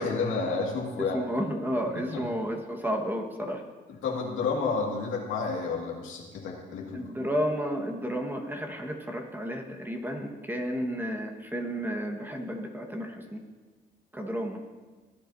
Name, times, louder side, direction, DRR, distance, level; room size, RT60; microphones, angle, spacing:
voice 1, 0.0-1.2 2.0-2.3 4.0-7.0, left 4 dB, 85° left, -1 dB, 2.1 m, -30 dB
voice 2, 1.0-3.6 6.9-13.4 14.1-14.6, equal, 10° right, 2 dB, 1.5 m, -32 dB
16.5 x 10.0 x 2.7 m, 1.4 s
cardioid pair, 90°, 20 cm